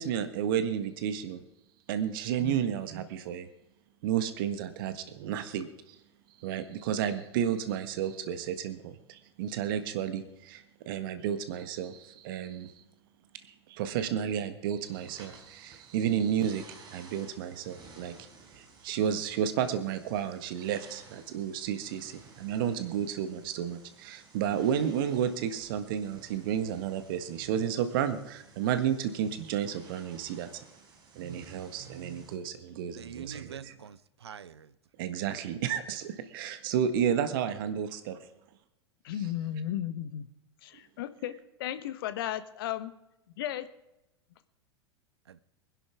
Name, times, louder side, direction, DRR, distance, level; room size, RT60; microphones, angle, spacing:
voice 1, 0.0-1.4 1.9-3.5 4.0-6.0 6.4-12.7 13.4-18.1 18.5-30.5 31.1-33.7 35.0-38.1, right 9 dB, 55° right, 9 dB, 1.6 m, -32 dB
sound 1, 14.8-32.3, right 5 dB, 30° right, 4.5 m, -54 dB
voice 2, 33.0-34.8 45.3-45.4, right 7 dB, 70° right, 17 dB, 0.8 m, -45 dB
voice 3, 39.0-40.3 40.6-42.9 43.4-43.6, left 11 dB, 55° left, 12 dB, 1.2 m, -35 dB
24.5 x 11.0 x 3.6 m, 0.92 s
figure-of-eight pair, 90°, 14 cm